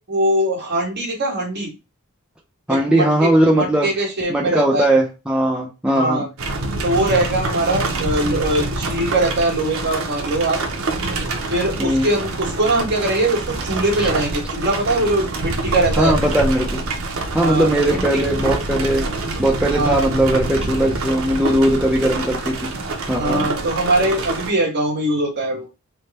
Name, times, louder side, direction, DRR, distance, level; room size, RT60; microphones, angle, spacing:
voice 1, 0.1-1.7 2.7-3.3 3.6-4.9 5.9-6.3 6.8-10.6 11.5-16.1 17.4-18.0 19.7-20.1 23.1-25.7, right 1 dB, 50° right, -1 dB, 1.4 m, -21 dB
voice 2, 2.7-3.9 4.3-6.3 11.8-12.1 14.0-14.1 16.0-16.7 17.3-19.1 19.4-22.7 23.1-23.5, right 1 dB, 5° right, -2 dB, 0.4 m, -19 dB
sound 1, 6.4-24.5, right 2 dB, 65° right, 0.7 m, -26 dB
3.4 x 2.1 x 4.0 m, 0.29 s
head